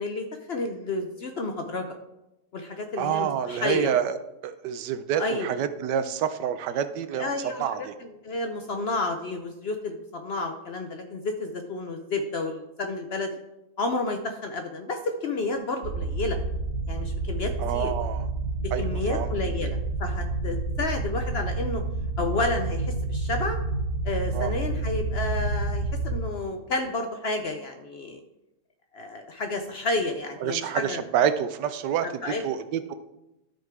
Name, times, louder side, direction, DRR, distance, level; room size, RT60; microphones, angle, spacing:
voice 1, 0.0-1.9 2.5-3.9 5.2-5.5 7.1-13.3 13.8-16.4 16.9-17.9 18.6-21.8 22.2-23.6 24.0-28.2 28.9-31.0 32.2-32.4, left 3 dB, 65° left, 5 dB, 0.6 m, -31 dB
voice 2, 3.0-4.2 4.4-7.9 17.6-18.2 18.7-19.3 24.3-24.6 30.4-32.9, right 9 dB, 80° right, 11 dB, 1.3 m, -28 dB
sound 1, 15.8-26.2, right 2 dB, 50° right, 1.3 m, -29 dB
12.5 x 4.5 x 4.6 m, 0.94 s
omnidirectional pair, 1.8 m